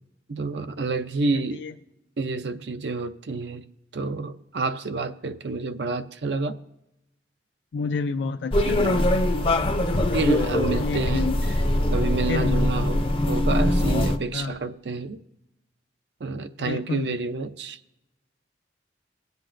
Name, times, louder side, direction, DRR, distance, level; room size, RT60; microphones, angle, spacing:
voice 1, 0.3-1.6 2.2-3.6 3.9-6.5 8.6-9.1 10.1-11.3 11.9-15.2 16.2-17.8, right 3 dB, 70° right, 0.5 m, -29 dB
voice 2, 7.7-9.1 10.7-11.4 12.3-12.6 14.3-14.6 16.6-17.2, left 4 dB, 85° left, 0.4 m, -29 dB
sound 1, 8.5-14.2, left 1 dB, 30° left, 0.5 m, -22 dB
20.0 x 8.0 x 2.5 m
head